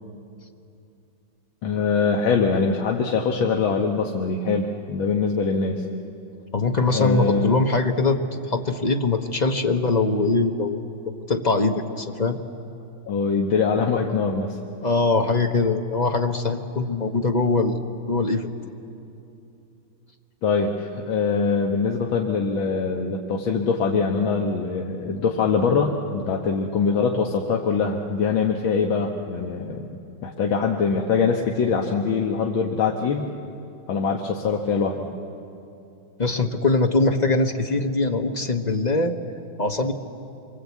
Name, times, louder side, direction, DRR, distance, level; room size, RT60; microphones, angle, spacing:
voice 1, 1.6-5.8 6.9-7.5 13.1-14.6 20.4-33.3 33.9-35.1, left 5 dB, 75° left, 0 dB, 2.0 m, -23 dB
voice 2, 6.5-12.4 14.8-17.8 18.1-18.5 36.2-39.2 39.6-39.9, left 3 dB, 30° left, 5 dB, 0.9 m, -22 dB
27.5 x 24.0 x 8.3 m, 2.7 s
omnidirectional pair, 2.2 m